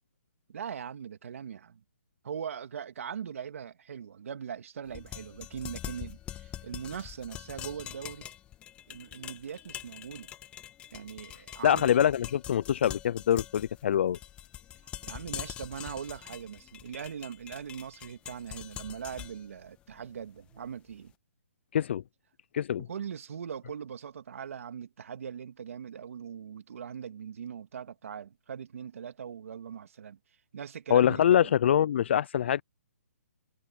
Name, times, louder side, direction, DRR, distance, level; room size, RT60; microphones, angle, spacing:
voice 1, 0.5-1.8 2.2-8.3 8.9-10.3 10.9-12.1 14.8-21.1 22.8-30.2 30.5-31.5, right 7 dB, 60° right, 2.4 m, -41 dB
sound 1, 4.9-20.9, left 11 dB, 15° left, 1.2 m, -44 dB
voice 2, 11.6-14.2 21.7-22.0 22.5-22.9 30.9-32.6, left 10 dB, 45° left, 0.3 m, -24 dB
hypercardioid pair, 160°, 8 cm